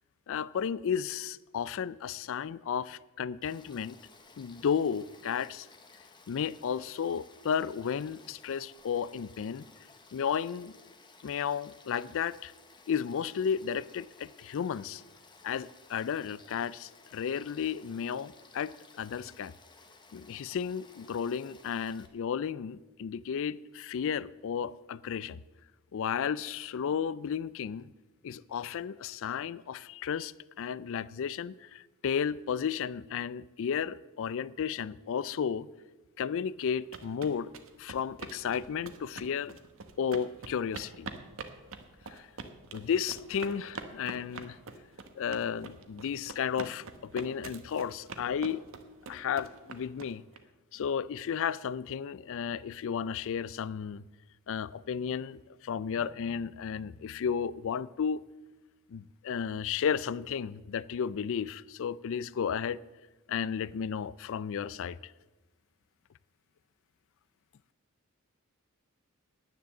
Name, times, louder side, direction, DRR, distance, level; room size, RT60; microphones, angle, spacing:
voice 1, 0.3-4.0 4.4-5.7 6.3-9.7 10.1-10.8 11.2-12.5 12.9-15.0 15.4-19.5 20.1-25.4 25.9-27.9 28.2-35.7 36.2-37.5 37.8-39.5 40.0-41.1 42.1-42.3 42.7-44.6 45.2-48.7 49.1-50.2 50.7-54.1 54.5-58.2 58.9-62.8 63.3-65.1, left 7 dB, 60° left, 0.4 m, -33 dB
Frog / Stream, 3.4-22.1, left 4 dB, 20° left, 1.0 m, -57 dB
sound 1, 36.6-50.4, right 4 dB, 60° right, 1.0 m, -44 dB
10.5 x 9.4 x 7.2 m
head